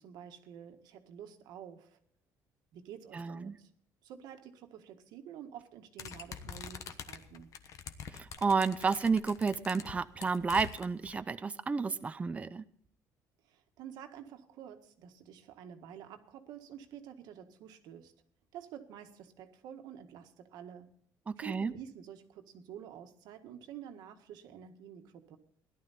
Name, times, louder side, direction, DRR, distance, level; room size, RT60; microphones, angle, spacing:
voice 1, 0.0-2.0 2.7-3.7 4.0-7.6 13.5-18.1 18.5-20.9 21.4-25.4, right 9 dB, 75° right, 6 dB, 1.7 m, -49 dB
voice 2, 3.1-3.6 8.1-12.6 21.3-21.7, right 5 dB, 20° right, 12 dB, 0.6 m, -31 dB
sound 1, 6.0-11.1, left 7 dB, 50° left, 1.2 m, -46 dB
17.0 x 12.0 x 4.2 m, 0.63 s
cardioid pair, 130°, 7 cm